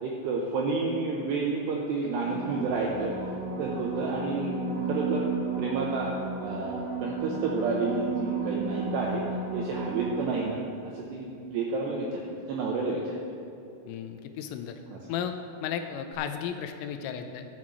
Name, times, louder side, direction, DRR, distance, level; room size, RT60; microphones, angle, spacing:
voice 1, 0.0-3.2 3.6-4.5 4.8-5.3 5.6-6.1 6.4-9.2 9.5-10.6 10.8-12.2 12.5-13.2 14.9-15.0, right 3 dB, 80° right, -1 dB, 2.4 m, -30 dB
sound 1, 2.2-10.8 16.1-16.2, right 4 dB, 65° right, 1.8 m, -33 dB
voice 2, 13.8-14.8 15.1-15.3 15.6-17.5, left 8 dB, 85° left, 7 dB, 3.1 m, -34 dB
12.5 x 7.2 x 6.1 m, 2.7 s
omnidirectional pair, 6.0 m